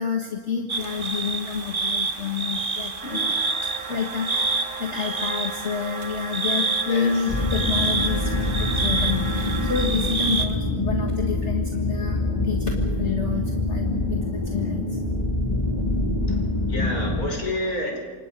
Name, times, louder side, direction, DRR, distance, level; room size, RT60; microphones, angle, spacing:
voice 1, 0.0-15.0, left 6 dB, 50° left, 1 dB, 1.9 m, -29 dB
sound 1, 0.7-10.5, right 3 dB, 35° right, 1.7 m, -28 dB
sound 2, 3.0-9.9, right 4 dB, 65° right, 2.5 m, -36 dB
sound 3, 7.3-17.3, left 2 dB, 25° left, 3.0 m, -25 dB
voice 2, 16.7-18.0, left 1 dB, 75° left, 1 dB, 5.5 m, -29 dB
28.0 x 26.0 x 5.4 m, 1.4 s
omnidirectional pair, 1.6 m